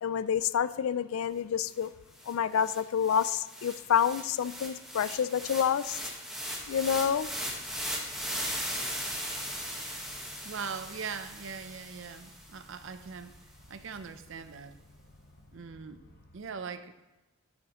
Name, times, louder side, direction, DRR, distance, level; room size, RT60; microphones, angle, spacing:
voice 1, 0.0-1.9 2.3-6.0 6.7-7.3, left 8 dB, 70° left, 16 dB, 0.3 m, -28 dB
sound 1, 1.8-1.9 2.2-12.5, equal, ahead, 1.3 m, -38 dB
sound 2, 6.6-16.4, left 1 dB, 40° left, 1.2 m, -57 dB
voice 2, 10.2-15.0 15.5-16.9, right 5 dB, 60° right, 11 dB, 0.5 m, -41 dB
12.0 x 7.9 x 3.0 m, 1.1 s
head